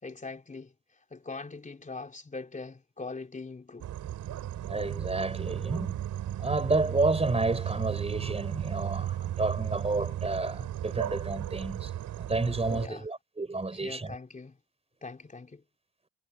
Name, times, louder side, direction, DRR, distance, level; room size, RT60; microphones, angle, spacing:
voice 1, 0.0-3.9 12.7-13.1 13.7-14.6 15.0-15.6, left 3 dB, 25° left, 3.8 m, -42 dB
sound 1, 3.8-12.9, right 12 dB, 75° right, 4.2 m, -35 dB
voice 2, 4.6-6.0 6.4-11.9 12.2-14.1, right 3 dB, 20° right, 5.2 m, -30 dB
cardioid pair, 90°, 30 cm